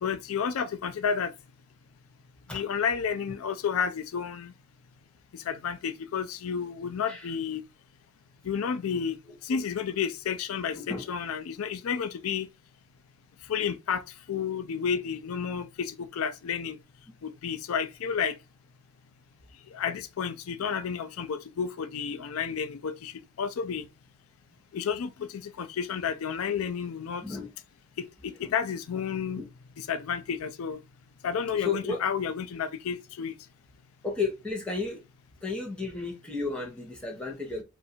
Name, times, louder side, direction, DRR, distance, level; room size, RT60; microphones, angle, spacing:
voice 1, 0.0-1.3 2.5-4.5 5.5-7.6 8.5-9.2 9.5-12.5 13.5-14.0 14.3-16.8 17.2-18.4 19.7-23.1 23.4-23.8 24.7-27.2 28.0-29.4 29.8-30.8 31.2-33.3, left 7 dB, 90° left, 0.4 m, -31 dB
voice 2, 10.7-11.1 27.2-27.5 28.4-28.5 29.4-29.5 31.6-32.0 34.0-35.0 35.4-37.6, left 4 dB, 5° left, 1.0 m, -33 dB
2.6 x 2.5 x 4.2 m
head